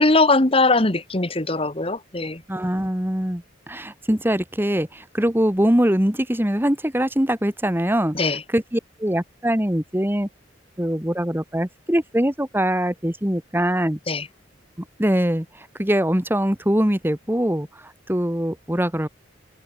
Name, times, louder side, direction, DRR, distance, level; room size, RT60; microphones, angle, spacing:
voice 1, 0.0-2.4 8.1-8.4 14.1-14.3, left 2 dB, 30° left, 1.5 m, -20 dB
voice 2, 2.5-8.2 8.5-10.3 10.8-14.0 15.0-19.1, equal, 10° right, 1.6 m, -22 dB
head